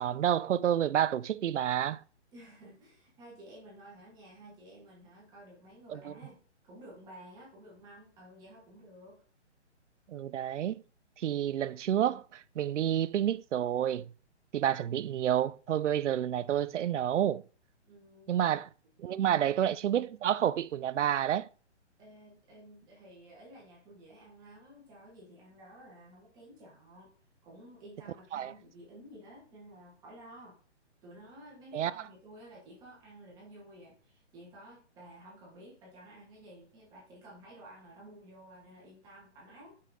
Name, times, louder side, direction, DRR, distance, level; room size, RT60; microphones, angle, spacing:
voice 1, 0.0-2.0 5.9-6.0 10.1-10.8 11.2-14.1 14.5-17.4 18.3-18.7 19.0-21.5 28.3-28.5 31.7-31.9, right 10 dB, 80° right, 0.5 m, -29 dB
voice 2, 2.3-9.2 17.9-18.5 22.0-27.1 27.4-30.6 31.0-39.8, right 1 dB, 10° right, 1.8 m, -53 dB
6.5 x 5.6 x 3.7 m
hypercardioid pair, 165°, 35 cm